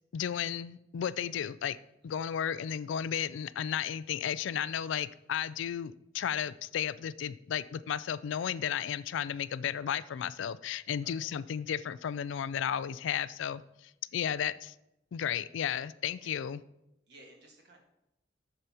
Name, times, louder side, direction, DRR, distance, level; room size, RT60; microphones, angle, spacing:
voice 1, 0.1-1.8 2.0-14.7 15.1-16.6, left 9 dB, 75° left, 17 dB, 0.3 m, -34 dB
voice 2, 14.1-14.4 16.2-16.4 17.1-17.8, right 1 dB, 55° right, 0 dB, 1.6 m, -58 dB
11.0 x 6.8 x 2.9 m, 0.86 s
head